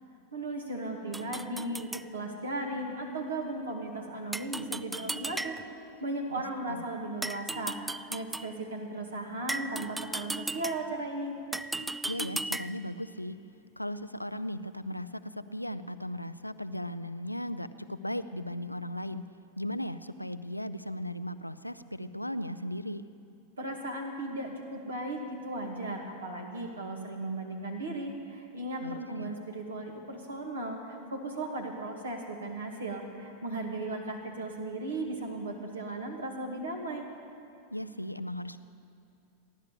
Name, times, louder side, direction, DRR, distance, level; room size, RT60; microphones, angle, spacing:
voice 1, 0.3-5.6 6.0-11.4 23.6-37.1, right 2 dB, 70° right, 1 dB, 2.2 m, -36 dB
sound 1, 1.1-2.1 4.3-5.9 7.2-8.6 9.5-11.0 11.5-12.9, right 2 dB, 5° right, 0.4 m, -36 dB
voice 2, 12.1-13.4 13.8-19.2 19.6-23.0 28.8-29.3 37.7-38.6, left 1 dB, 90° left, 13 dB, 0.5 m, -37 dB
16.0 x 11.5 x 6.8 m, 2.8 s
figure-of-eight pair, 90°, 0 cm